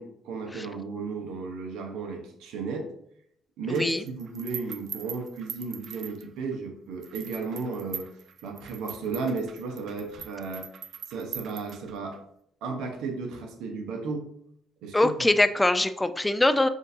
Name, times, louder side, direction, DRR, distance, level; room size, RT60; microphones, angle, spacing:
voice 1, 0.0-2.9 3.6-8.1 8.4-10.7 11.1-12.2 12.6-14.2 14.8-15.3, right 4 dB, 85° right, 2 dB, 0.9 m, -34 dB
voice 2, 3.7-4.0 14.9-16.7, left 2 dB, 15° left, 10 dB, 0.4 m, -23 dB
sound 1, 3.7-6.6 7.0-12.2, right 8 dB, 65° right, 0.3 m, -42 dB
6.3 x 2.6 x 2.7 m, 0.71 s
supercardioid pair, 70°, 0 cm